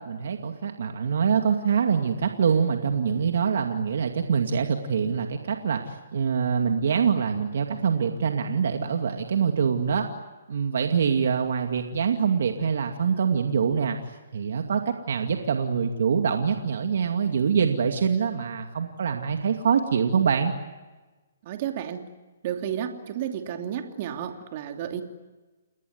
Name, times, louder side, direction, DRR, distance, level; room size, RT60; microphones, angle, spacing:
voice 1, 0.1-10.1 10.5-14.0 14.3-20.5, right 6 dB, 65° right, 5 dB, 2.3 m, -24 dB
voice 2, 21.4-22.0 22.4-25.0, right 9 dB, 40° right, 5 dB, 2.9 m, -32 dB
30.0 x 20.0 x 9.5 m, 1.2 s
hypercardioid pair, 150°, 0 cm